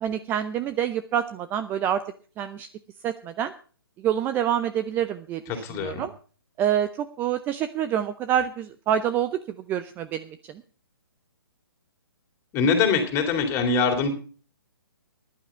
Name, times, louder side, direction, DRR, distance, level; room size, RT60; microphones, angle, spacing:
voice 1, 0.0-2.0 2.4-2.7 3.0-3.5 4.0-5.4 5.8-6.1 6.6-9.4 9.7-10.5, right 10 dB, 15° right, 11 dB, 0.6 m, -26 dB
voice 2, 5.5-6.1 12.5-14.1, left 5 dB, 20° left, 4 dB, 3.2 m, -23 dB
15.0 x 11.5 x 4.5 m, 0.40 s
figure-of-eight pair, 130°, 12 cm